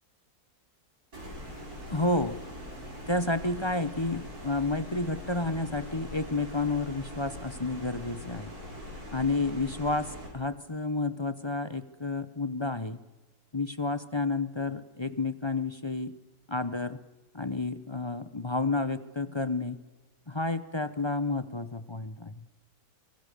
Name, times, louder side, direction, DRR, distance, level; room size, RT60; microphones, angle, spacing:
sound 1, 1.1-10.3, equal, 85° right, 7.4 m, -42 dB
voice 1, 1.9-2.4 3.1-8.5 9.1-13.0 13.5-16.2 16.5-17.0 17.3-19.8 20.3-22.5, left 3 dB, 20° left, 12 dB, 0.8 m, -30 dB
25.5 x 23.0 x 6.9 m, 1.1 s
omnidirectional pair, 1.6 m